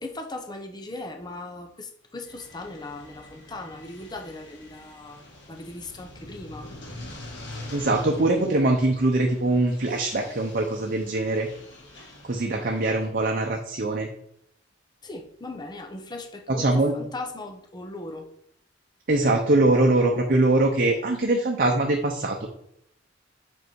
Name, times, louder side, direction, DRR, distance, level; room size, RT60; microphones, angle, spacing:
voice 1, 0.0-6.7 15.0-18.3, left 2 dB, 25° left, 4 dB, 0.8 m, -38 dB
sound 1, 2.2-13.1, left 1 dB, 70° left, 2.0 m, -44 dB
voice 2, 7.7-11.5 12.2-14.1 16.5-16.9 19.1-22.4, right 2 dB, 50° right, 2 dB, 0.7 m, -22 dB
5.4 x 5.3 x 4.7 m, 0.73 s
head